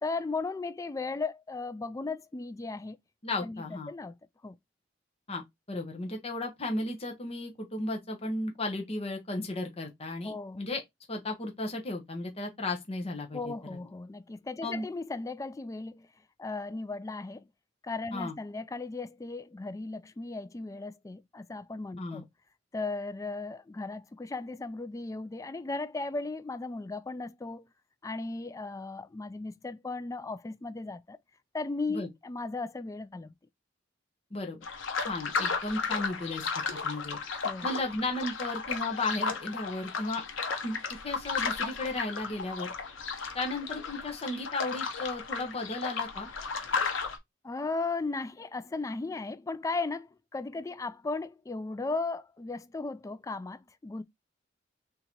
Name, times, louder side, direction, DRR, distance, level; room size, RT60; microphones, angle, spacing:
voice 1, 0.0-3.0 3.4-4.1 4.4-4.5 10.2-10.6 13.3-16.1 16.4-17.5 17.8-22.2 22.7-27.7 28.0-31.2 31.5-33.3 37.4-37.7 47.4-54.0, left 3 dB, 15° left, 0.3 m, -36 dB
voice 2, 3.2-3.9 5.3-10.8 11.1-13.8 14.6-14.9 18.1-18.3 22.0-22.2 31.9-32.1 34.3-34.6 35.0-37.2 37.6-40.2 40.6-42.7 43.3-46.3, left 2 dB, 30° left, 0.9 m, -35 dB
sound 1, 34.6-47.2, left 5 dB, 85° left, 0.9 m, -34 dB
3.7 x 2.7 x 4.4 m
head